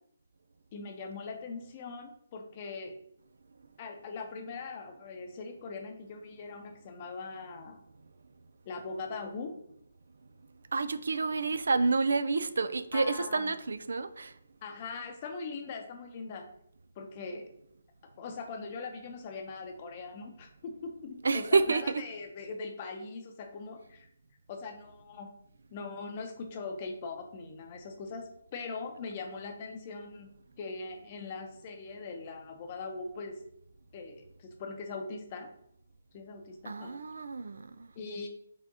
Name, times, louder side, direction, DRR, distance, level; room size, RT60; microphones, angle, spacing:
voice 1, 0.7-3.0 3.8-7.8 8.7-9.5 12.9-13.5 14.6-16.5 17.0-17.5 18.2-24.1 24.5-25.3 25.7-30.3 30.6-33.4 33.9-35.5 36.1-37.0 38.0-38.3, left 4 dB, 35° left, 0.6 m, -41 dB
voice 2, 10.7-14.4 21.2-22.1 36.6-37.9, right 4 dB, 75° right, 0.3 m, -29 dB
4.5 x 3.5 x 2.7 m
hypercardioid pair, 155°, 0 cm